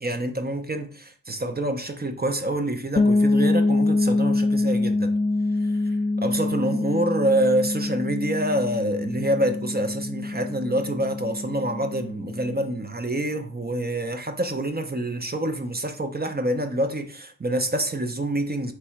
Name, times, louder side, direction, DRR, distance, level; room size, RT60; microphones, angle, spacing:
voice 1, 0.0-5.1 5.6-18.7, right 1 dB, 25° right, 0.6 m, -27 dB
sound 1, 3.0-12.6, left 2 dB, 25° left, 0.3 m, -25 dB
3.3 x 2.8 x 4.5 m
cardioid pair, 40°, 37 cm